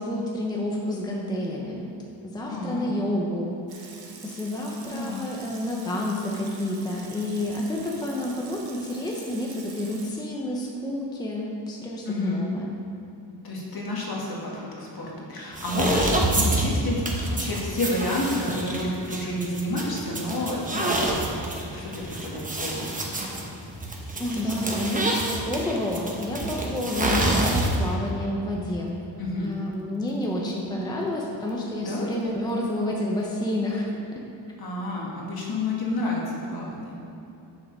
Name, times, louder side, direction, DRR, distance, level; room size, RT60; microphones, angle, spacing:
voice 1, 0.0-2.0 2.2-3.9 4.2-12.8 24.2-29.0 29.4-34.2, left 1 dB, 10° left, -2 dB, 0.8 m, -29 dB
voice 2, 2.5-2.9 4.9-5.3 12.0-12.4 13.4-21.3 21.6-22.9 29.2-29.6 31.8-32.1 34.6-37.0, left 1 dB, 55° left, -3 dB, 1.9 m, -29 dB
Water tap faucet / Sink (filling or washing) / Liquid, 3.7-10.1, right 5 dB, 80° right, 1.2 m, -46 dB
sound 1, 15.5-27.9, right 1 dB, 20° right, 1.0 m, -28 dB
7.5 x 7.1 x 5.4 m, 2.9 s
wide cardioid pair, 155°, 44 cm